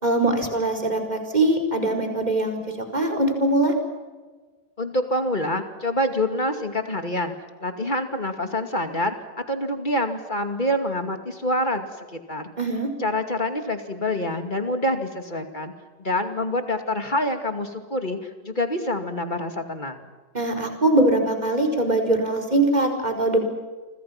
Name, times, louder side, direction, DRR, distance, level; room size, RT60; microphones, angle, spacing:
voice 1, 0.0-2.6 2.9-3.7 12.6-12.9 20.3-23.4, right 2 dB, 25° right, 4 dB, 4.9 m, -22 dB
voice 2, 4.8-7.4 7.6-9.1 9.5-12.5 13.0-15.7 16.0-20.0, left 1 dB, 30° left, 6 dB, 2.5 m, -26 dB
29.0 x 25.5 x 5.9 m, 1.3 s
omnidirectional pair, 1.7 m